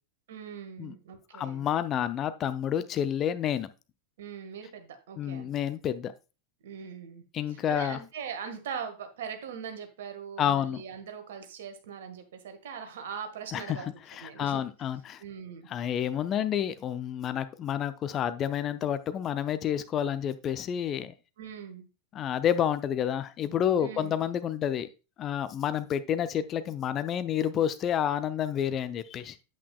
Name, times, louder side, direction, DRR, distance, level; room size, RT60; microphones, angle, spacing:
voice 1, 0.3-1.7 4.2-5.5 6.6-7.2 7.5-13.9 14.2-14.6 15.2-15.6 21.4-21.9 23.8-24.2, right 7 dB, 60° right, 7 dB, 1.4 m, -41 dB
voice 2, 1.3-3.7 5.2-6.1 7.3-8.0 10.4-10.8 13.5-15.2 15.7-21.1 22.1-24.9 25.2-29.4, left 9 dB, 30° left, 12 dB, 0.5 m, -29 dB
8.4 x 8.4 x 2.3 m, 0.30 s
figure-of-eight pair, 90°, 0 cm